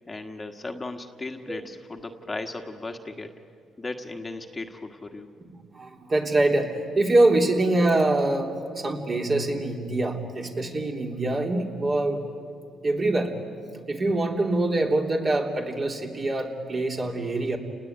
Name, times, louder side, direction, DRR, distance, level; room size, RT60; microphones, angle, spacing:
voice 1, 0.1-3.3 3.8-5.3, left 2 dB, 25° left, 4 dB, 1.6 m, -36 dB
voice 2, 5.7-12.2 12.8-13.3 13.9-17.6, right 2 dB, 40° right, 1 dB, 3.3 m, -24 dB
30.0 x 19.5 x 9.5 m, 2.3 s
cardioid pair, 90°, 0 cm